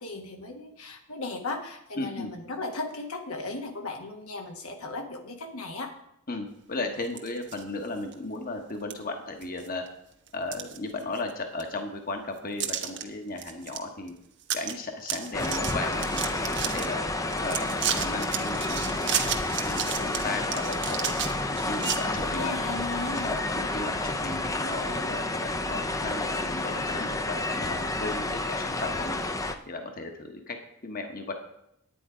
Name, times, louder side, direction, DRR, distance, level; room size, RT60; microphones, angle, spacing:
voice 1, 0.0-5.9 22.1-23.4, left 3 dB, 85° left, 3 dB, 1.6 m, -36 dB
voice 2, 2.0-2.3 6.3-9.8 10.3-14.1 14.5-16.3 16.6-17.0 17.4-21.1 21.6-22.6 23.2-29.2 29.7-30.6 30.8-31.3, left 2 dB, 40° left, 4 dB, 1.2 m, -35 dB
sound 1, 7.0-7.6 8.1-8.2 8.9-9.0 9.4-9.9 10.3-11.3 11.6-11.7 12.6-13.0 13.4-13.8 14.1-14.2 14.4-14.7 15.0-16.9 17.3-22.0, right 10 dB, 55° right, 1.1 m, -32 dB
sound 2, 15.3-29.5, left 2 dB, 15° left, 0.6 m, -30 dB
9.9 x 9.4 x 5.0 m, 0.78 s
head